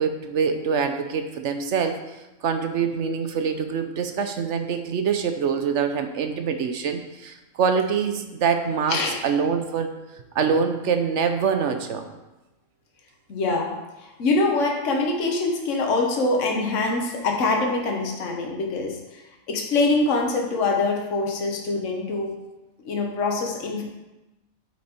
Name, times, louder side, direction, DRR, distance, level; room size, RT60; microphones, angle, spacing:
voice 1, 0.0-2.0 2.4-9.9 10.3-12.1, right 6 dB, 65° right, 7 dB, 1.0 m, -25 dB
voice 2, 13.3-13.7 14.2-19.0 19.5-22.3 22.8-23.8, left 3 dB, 70° left, 0 dB, 1.4 m, -24 dB
8.6 x 6.0 x 4.4 m, 1.0 s
omnidirectional pair, 1.4 m